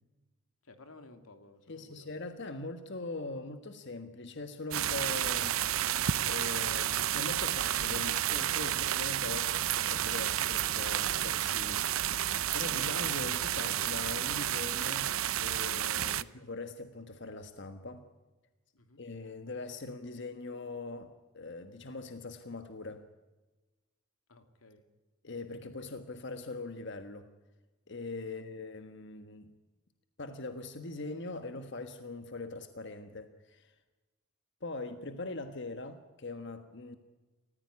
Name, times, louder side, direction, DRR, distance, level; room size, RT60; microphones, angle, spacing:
voice 1, 0.6-2.1 16.1-16.2 18.7-19.0 24.3-24.8 28.3-28.5, left 2 dB, 90° left, 7 dB, 2.7 m, -56 dB
voice 2, 1.7-5.9 6.2-12.2 12.5-18.0 19.0-23.1 25.2-27.3 27.9-29.5 30.2-33.7 34.6-37.0, left 2 dB, 55° left, 8 dB, 1.4 m, -42 dB
sound 1, 4.7-16.2, right 11 dB, 80° right, 0.7 m, -31 dB
29.0 x 15.0 x 9.6 m, 1.2 s
head